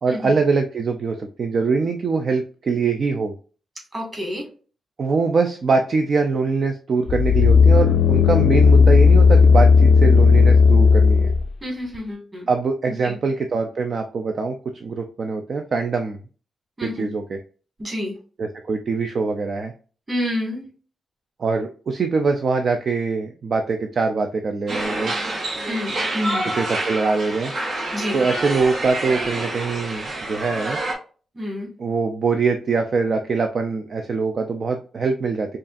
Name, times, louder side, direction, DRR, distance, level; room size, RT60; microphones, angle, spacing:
voice 1, 0.0-3.3 5.0-11.3 12.5-14.6 14.8-16.2 16.8-17.4 18.4-19.7 21.4-25.1 26.4-27.5 28.1-30.8 31.8-35.6, right 4 dB, 45° right, 5 dB, 0.4 m, -23 dB
voice 2, 3.9-4.4 11.6-12.5 13.0-13.1 16.8-17.1 17.8-18.1 20.1-20.6 25.7-26.5 27.9-28.2 31.4-31.7, left 1 dB, 20° right, -2 dB, 1.9 m, -28 dB
sound 1, 7.1-11.5 11.9-12.0, left 5 dB, 75° left, 0.4 m, -13 dB
sound 2, 24.7-30.9, right 2 dB, 70° right, 1.4 m, -27 dB
5.2 x 2.4 x 2.5 m, 0.39 s
wide cardioid pair, 150°, 0 cm